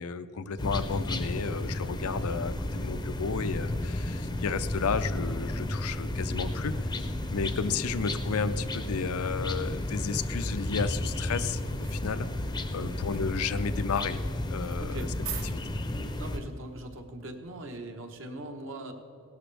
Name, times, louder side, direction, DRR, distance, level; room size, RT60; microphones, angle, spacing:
voice 1, 0.0-12.3 12.7-14.2 14.5-15.1 15.4-15.6, left 5 dB, 80° left, 11 dB, 0.5 m, -32 dB
sound 1, 0.6-16.4, left 1 dB, 20° left, 0.6 m, -32 dB
sound 2, 11.4-17.0, right 8 dB, 80° right, 1.7 m, -47 dB
voice 2, 12.6-13.0 14.8-15.1 16.2-18.9, right 1 dB, 60° right, 4 dB, 1.1 m, -41 dB
17.0 x 12.0 x 3.4 m, 2.6 s
head